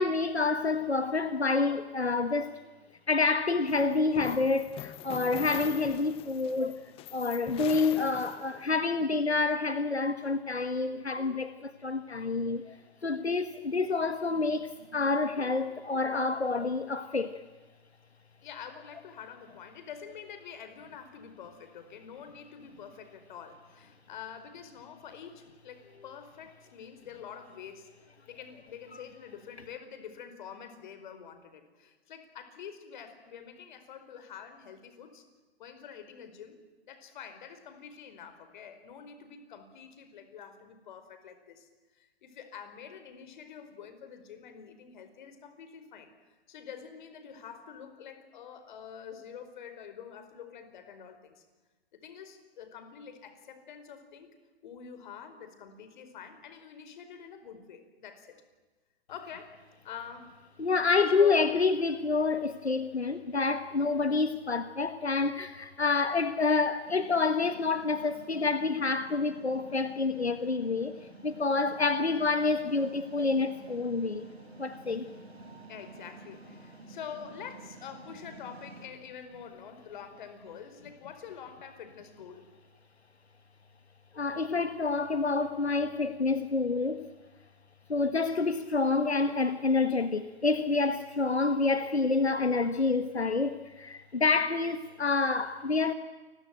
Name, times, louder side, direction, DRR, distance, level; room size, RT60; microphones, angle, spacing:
voice 1, 0.0-2.6 3.1-6.8 7.1-12.8 13.0-17.4 60.6-70.9 71.2-74.3 74.6-75.1 84.1-87.1 87.9-95.9, left 3 dB, 85° left, 1.5 m, -28 dB
sound 1, 3.7-8.8, left 14 dB, 20° left, 0.9 m, -43 dB
voice 2, 18.4-27.9 28.3-35.2 35.6-36.6 36.8-51.4 51.9-54.3 54.6-58.4 59.1-59.6 59.8-60.3 60.8-61.6 62.9-63.2 63.8-64.1 75.7-82.5 94.3-94.4, left 7 dB, 50° left, 4.8 m, -46 dB
sound 2, 66.8-78.9, right 2 dB, 80° right, 4.3 m, -50 dB
29.0 x 22.0 x 9.1 m
figure-of-eight pair, 120°, 31 cm